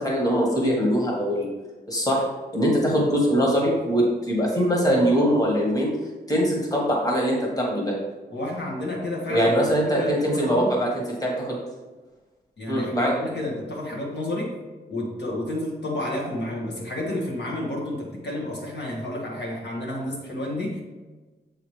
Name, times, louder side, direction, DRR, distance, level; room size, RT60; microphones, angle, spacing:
voice 1, 0.0-1.5 1.9-2.3 2.5-5.9 6.3-8.0 9.3-11.6 12.7-13.2, equal, 20° left, -2 dB, 1.4 m, -22 dB
voice 2, 8.3-9.5 9.9-10.7 12.6-14.5 14.9-20.8, left 1 dB, 85° left, -3 dB, 1.6 m, -30 dB
7.1 x 4.9 x 3.2 m, 1.2 s
wide cardioid pair, 140°, 17 cm